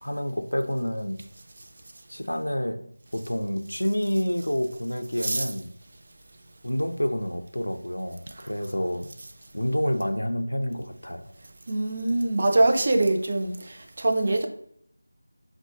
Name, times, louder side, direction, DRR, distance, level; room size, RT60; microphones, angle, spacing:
voice 1, 0.0-1.2 2.1-2.8 3.1-5.7 6.6-9.1 9.5-11.2, equal, 80° left, 0.3 m, -28 dB
voice 2, 11.7-14.5, right 2 dB, 35° right, 0.3 m, -23 dB
4.2 x 2.0 x 2.8 m
figure-of-eight pair, 170°, 0 cm